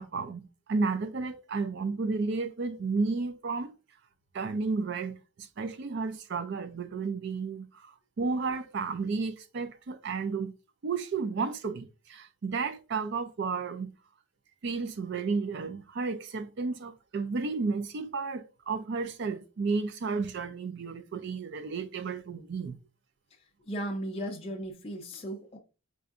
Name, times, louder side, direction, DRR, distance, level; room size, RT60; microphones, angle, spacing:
voice 1, 0.0-3.7 4.3-10.5 10.8-13.9 14.6-22.8, right 4 dB, 50° right, 0.4 m, -32 dB
voice 2, 23.7-25.6, right 1 dB, 25° left, 0.5 m, -36 dB
4.7 x 2.6 x 2.4 m
head